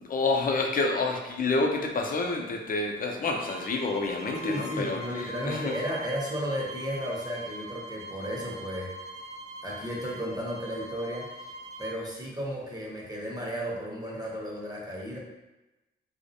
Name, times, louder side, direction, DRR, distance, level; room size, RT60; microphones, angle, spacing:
voice 1, 0.0-5.8, left 3 dB, 45° left, 2 dB, 0.5 m, -28 dB
sound 1, 3.4-12.0, right 1 dB, 35° right, 0.4 m, -42 dB
voice 2, 4.4-8.9 9.6-11.3 11.8-15.2, equal, 20° right, -4 dB, 0.8 m, -34 dB
2.4 x 2.0 x 2.7 m, 1.0 s
supercardioid pair, 50°, 20 cm